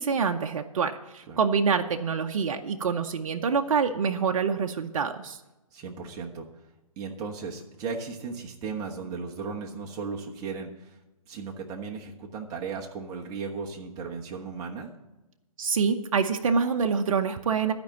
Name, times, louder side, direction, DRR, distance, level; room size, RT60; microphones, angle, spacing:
voice 1, 0.0-5.4 15.6-17.7, right 5 dB, 60° right, 5 dB, 0.7 m, -26 dB
voice 2, 5.7-6.5 7.0-11.0 11.3-14.9, right 5 dB, 20° right, 0 dB, 1.2 m, -36 dB
12.5 x 5.2 x 8.5 m, 1.0 s
hypercardioid pair, 150°, 19 cm